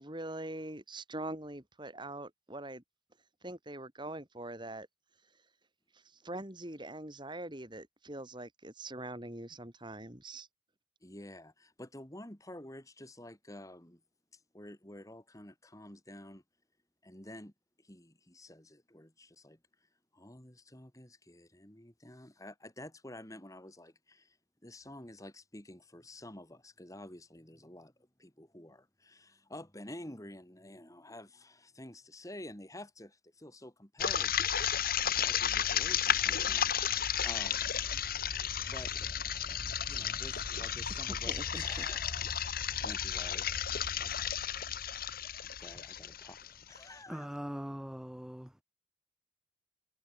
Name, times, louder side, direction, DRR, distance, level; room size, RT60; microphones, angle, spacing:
voice 1, 0.0-2.8 3.4-4.9 5.9-10.5 40.9-41.0 41.3-41.4 41.8-41.9, right 1 dB, 25° right, 3.5 m, -43 dB
voice 2, 11.0-14.0 14.3-16.4 17.0-17.5 17.8-19.6 20.1-24.4 24.6-34.4 35.0-36.9 37.2-37.7 38.6-38.9 39.9-42.3 42.6-44.6 45.4-47.3, left 1 dB, 15° left, 3.0 m, -50 dB
sound 1, 34.0-46.8, left 8 dB, 50° left, 2.1 m, -33 dB
voice 3, 47.1-48.5, equal, 5° right, 1.2 m, -41 dB
head